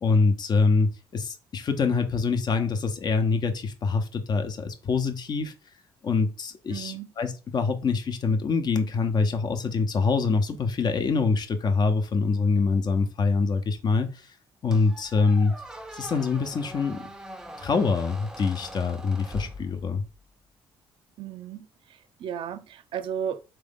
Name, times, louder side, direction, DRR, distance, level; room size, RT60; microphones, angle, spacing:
voice 1, 0.0-5.5 6.0-14.3 14.6-15.5 15.9-17.1 17.6-20.0, left 4 dB, 45° left, 0.9 m, -25 dB
voice 2, 6.7-7.1 21.2-23.4, right 8 dB, 65° right, 0.4 m, -34 dB
Squeak, 14.7-20.2, equal, 5° right, 0.6 m, -42 dB
4.0 x 3.1 x 3.6 m
cardioid pair, 95°, 10 cm